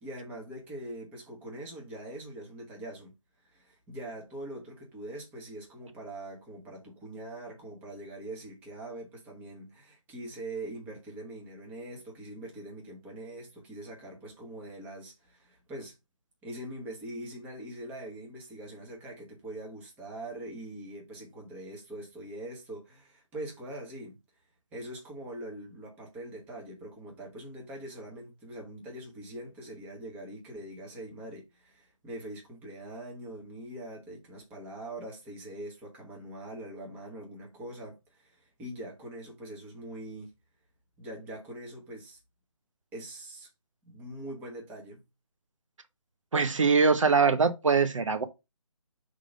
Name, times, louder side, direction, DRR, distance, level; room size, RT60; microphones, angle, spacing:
voice 1, 0.0-3.1 3.4-15.9 16.4-24.2 24.7-40.3 41.0-42.2 42.9-43.5 43.9-45.0, right 1 dB, 10° right, 1.2 m, -43 dB
voice 2, 46.3-48.2, right 5 dB, 65° right, 0.9 m, -23 dB
5.0 x 3.8 x 5.1 m
figure-of-eight pair, 155°, 17 cm